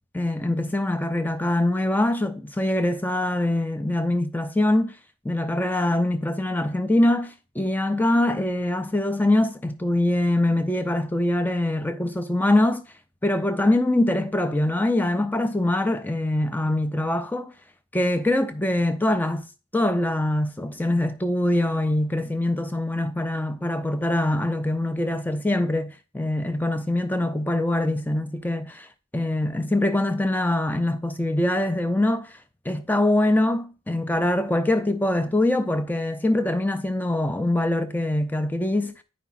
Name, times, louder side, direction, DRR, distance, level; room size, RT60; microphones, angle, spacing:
voice 1, 0.1-5.0 5.2-12.8 13.2-17.5 17.9-19.5 19.7-28.9 29.1-32.4 32.7-38.9, left 1 dB, 10° left, 0.4 m, -23 dB
9.7 x 5.1 x 2.5 m
head